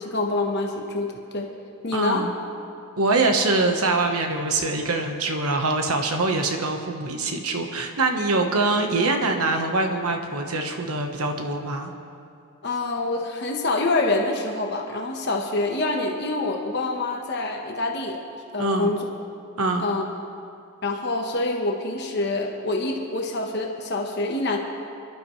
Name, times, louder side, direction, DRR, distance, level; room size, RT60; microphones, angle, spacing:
voice 1, 0.0-1.5 1.8-2.3 12.6-18.2 18.5-19.1 19.8-20.0 20.8-24.6, left 2 dB, 50° left, 1 dB, 1.2 m, -26 dB
voice 2, 1.9-2.3 3.0-11.9 18.6-18.9 19.6-19.9, right 3 dB, 85° right, 4 dB, 1.3 m, -24 dB
28.0 x 12.0 x 3.2 m, 2.5 s
head